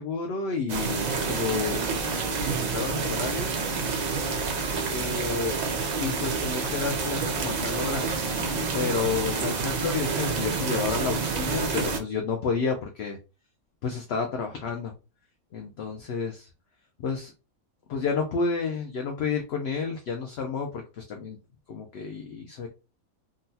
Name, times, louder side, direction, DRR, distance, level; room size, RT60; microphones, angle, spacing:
voice 1, 0.0-1.8 2.1-3.6 4.9-5.6 6.0-8.1 8.7-13.2 13.8-14.9 15.5-16.5 17.0-17.3 17.9-21.4 21.7-22.7, left 5 dB, 60° left, 3 dB, 0.7 m, -30 dB
sound 1, 0.7-12.0, right 4 dB, 85° right, 0.3 m, -28 dB
3.8 x 2.3 x 2.7 m, 0.29 s
omnidirectional pair, 1.5 m